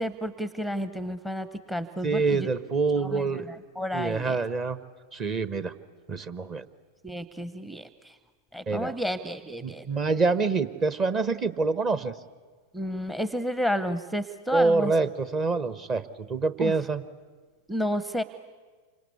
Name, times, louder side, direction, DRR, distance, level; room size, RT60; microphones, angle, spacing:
voice 1, 0.0-2.5 3.1-4.4 7.0-8.1 8.5-9.8 12.7-14.9 16.6-16.7 17.7-18.2, equal, 5° right, 14 dB, 0.8 m, -31 dB
voice 2, 2.0-3.5 3.9-4.8 5.1-5.7 6.1-6.7 8.7-9.0 9.6-12.1 14.5-17.0, right 4 dB, 30° right, 14 dB, 1.1 m, -26 dB
28.0 x 25.0 x 8.4 m, 1.4 s
figure-of-eight pair, 90°, 0 cm